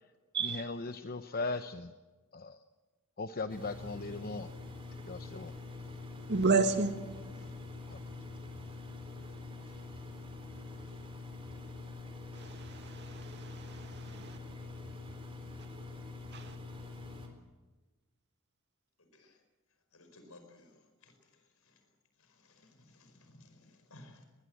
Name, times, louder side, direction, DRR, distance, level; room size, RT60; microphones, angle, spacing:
voice 1, 0.4-1.9 2.3-2.6 3.2-4.5 5.1-5.5 7.9-8.0, left 3 dB, 45° left, 9 dB, 0.8 m, -38 dB
Engine, 3.5-17.3, left 3 dB, 25° right, 4.1 m, -45 dB
voice 2, 6.3-6.9 12.4-14.4 16.3-16.5, right 4 dB, 55° right, 7 dB, 2.2 m, -32 dB
voice 3, 19.9-20.8 21.0-21.1 22.3-24.3, left 2 dB, 85° left, 6 dB, 4.9 m, -58 dB
21.5 x 21.5 x 7.8 m, 1.3 s
head